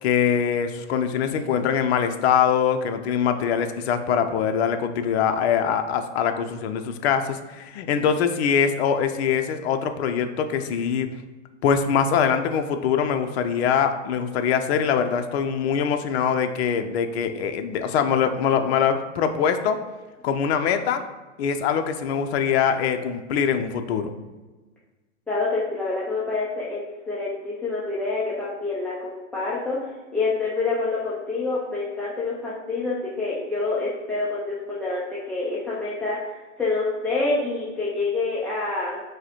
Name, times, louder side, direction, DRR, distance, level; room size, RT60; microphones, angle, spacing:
voice 1, 0.0-11.1 11.6-19.8 20.2-21.0 21.4-24.1, left 7 dB, 55° left, 7 dB, 0.6 m, -23 dB
voice 2, 25.3-26.8 27.1-39.0, left 3 dB, 5° left, -8 dB, 0.4 m, -27 dB
4.7 x 2.2 x 4.3 m, 1.3 s
hypercardioid pair, 120°, 38 cm